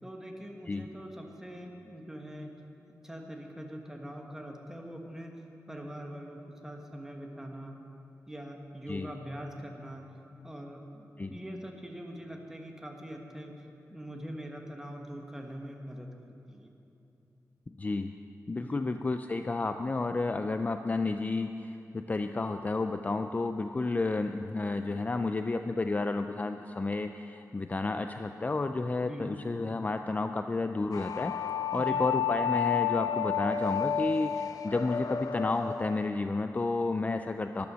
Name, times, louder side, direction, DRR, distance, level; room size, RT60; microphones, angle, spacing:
voice 1, 0.0-2.5 3.0-5.3 5.7-7.8 8.3-10.1 10.4-13.5 13.9-16.7 18.6-18.8 29.0-29.3 30.1-30.2 31.7-32.0, equal, 10° right, 2 dB, 1.3 m, -43 dB
voice 2, 17.7-18.1 18.5-31.3 31.7-37.7, left 3 dB, 25° left, 7 dB, 0.4 m, -31 dB
sound 1, 30.9-36.1, left 8 dB, 85° left, 0.5 m, -31 dB
14.0 x 11.5 x 6.2 m, 2.8 s
wide cardioid pair, 140°, 6 cm